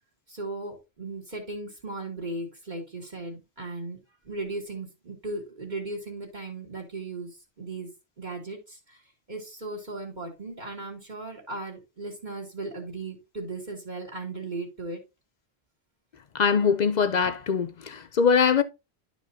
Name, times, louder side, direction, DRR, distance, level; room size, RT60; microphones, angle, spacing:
voice 1, 0.3-4.0 4.2-7.9 8.2-9.0 9.3-15.0, right 2 dB, 45° right, 2.0 m, -37 dB
voice 2, 16.3-18.6, left 6 dB, 50° left, 0.6 m, -22 dB
11.0 x 5.0 x 2.6 m
omnidirectional pair, 1.1 m